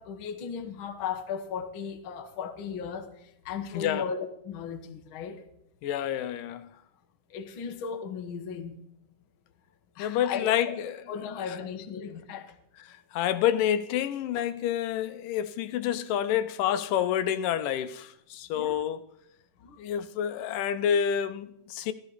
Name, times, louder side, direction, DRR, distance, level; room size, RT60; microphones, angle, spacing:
voice 1, 0.0-5.4 7.3-8.7 9.9-10.8 11.1-12.6 18.5-18.8 19.6-19.8, left 6 dB, 60° left, 1.4 m, -36 dB
voice 2, 3.7-4.1 5.8-6.7 10.0-11.0 11.4-11.6 12.9-19.1 19.8-21.9, left 10 dB, 80° left, 2.2 m, -28 dB
14.0 x 13.5 x 4.1 m
omnidirectional pair, 3.9 m